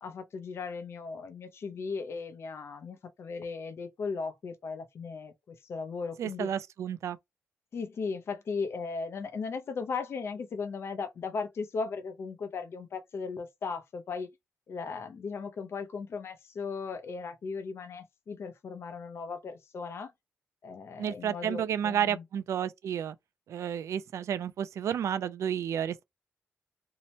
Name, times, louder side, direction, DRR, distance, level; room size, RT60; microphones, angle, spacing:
voice 1, 0.0-6.5 7.7-14.3 14.7-20.1 20.6-22.2, left 4 dB, 55° left, 0.6 m, -37 dB
voice 2, 6.2-7.2 21.0-23.2 23.5-26.0, right 9 dB, 75° right, 0.3 m, -31 dB
2.8 x 2.1 x 2.8 m
cardioid pair, 115°, 5 cm